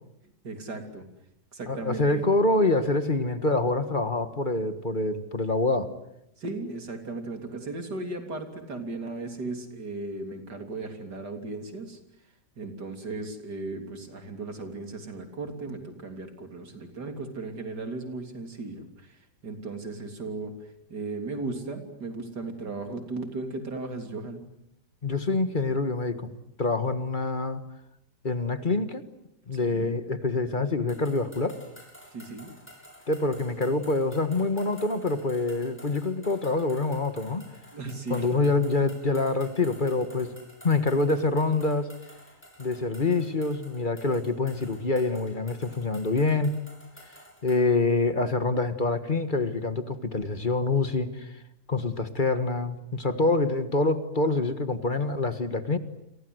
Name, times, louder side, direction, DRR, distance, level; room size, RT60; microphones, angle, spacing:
voice 1, 0.4-1.1 1.5-2.2 6.4-12.0 12.6-24.4 29.5-29.9 32.1-32.5 37.7-38.3, right 3 dB, 80° right, 6 dB, 3.9 m, -36 dB
voice 2, 1.7-5.9 25.0-26.3 26.6-27.6 28.2-29.0 29.5-31.6 33.1-37.4 38.1-40.3 40.6-41.9 42.6-46.6 47.4-51.3 51.7-55.8, left 3 dB, 30° left, 10 dB, 1.7 m, -26 dB
sound 1, 30.9-47.7, equal, 5° left, 7.3 m, -51 dB
30.0 x 24.0 x 8.0 m, 0.80 s
omnidirectional pair, 1.8 m